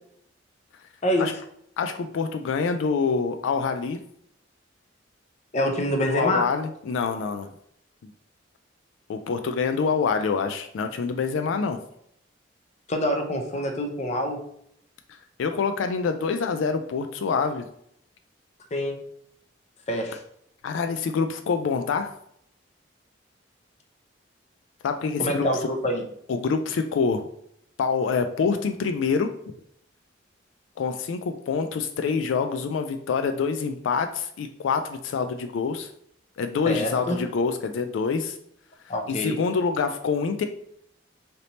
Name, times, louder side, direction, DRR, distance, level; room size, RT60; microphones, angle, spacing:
voice 1, 1.8-4.0 6.1-7.5 8.0-8.1 9.1-11.8 15.4-17.7 20.6-22.1 24.8-25.4 26.3-27.3 27.8-29.3 30.8-35.9 36.4-38.4 39.1-40.5, left 5 dB, 85° left, 7 dB, 0.3 m, -26 dB
voice 2, 5.5-6.5 12.9-14.4 18.7-19.0 19.9-20.2 25.2-26.0 36.7-37.2 38.9-39.4, equal, 35° left, 4 dB, 0.6 m, -26 dB
3.3 x 2.8 x 4.0 m, 0.69 s
head